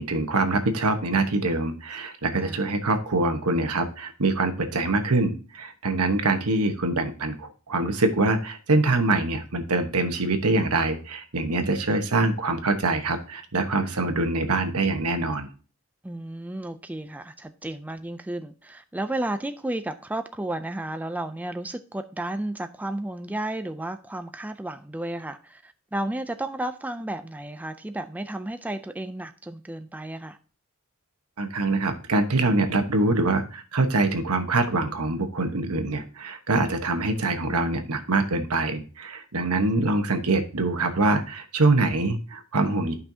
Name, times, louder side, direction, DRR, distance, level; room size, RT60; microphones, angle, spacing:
voice 1, 0.0-15.5 31.4-42.9, right 2 dB, 90° right, 1.2 m, -24 dB
voice 2, 16.0-30.4, right 1 dB, 5° right, 0.3 m, -33 dB
12.0 x 5.5 x 2.8 m
head